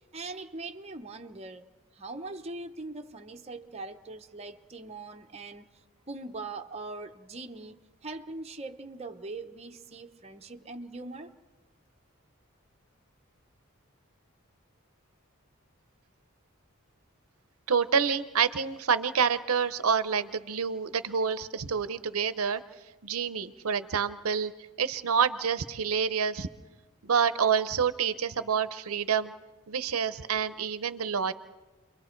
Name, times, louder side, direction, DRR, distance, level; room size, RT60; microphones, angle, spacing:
voice 1, 0.1-1.6 1.9-5.7 6.1-11.3, right 3 dB, 30° right, 0.8 m, -41 dB
voice 2, 17.7-22.6 23.0-24.5 24.8-26.5 27.0-29.3 29.7-31.3, right 6 dB, 80° right, 0.7 m, -27 dB
29.0 x 23.0 x 4.5 m
head